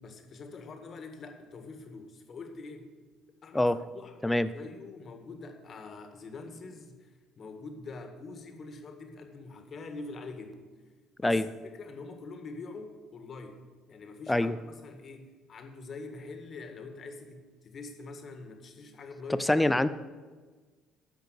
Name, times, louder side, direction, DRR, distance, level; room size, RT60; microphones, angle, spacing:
voice 1, 0.0-2.9 3.4-4.1 4.4-10.7 11.2-11.4 11.7-13.6 13.9-19.9, left 3 dB, 45° left, 5 dB, 1.9 m, -44 dB
voice 2, 19.4-19.9, left 1 dB, 10° left, 13 dB, 0.6 m, -24 dB
13.0 x 5.1 x 8.4 m, 1.4 s
supercardioid pair, 80°, 0 cm